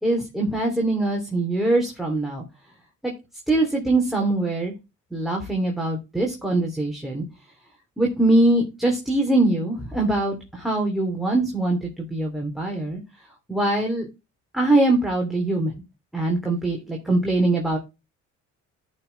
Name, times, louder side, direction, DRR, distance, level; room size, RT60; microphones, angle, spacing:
voice 1, 0.0-2.4 3.0-3.1 3.5-4.7 5.1-7.2 8.0-13.0 13.5-14.1 14.5-15.7 16.1-17.8, right 2 dB, ahead, -1 dB, 3.2 m, -22 dB
12.0 x 6.3 x 3.4 m, 0.25 s
cardioid pair, 90°, 30 cm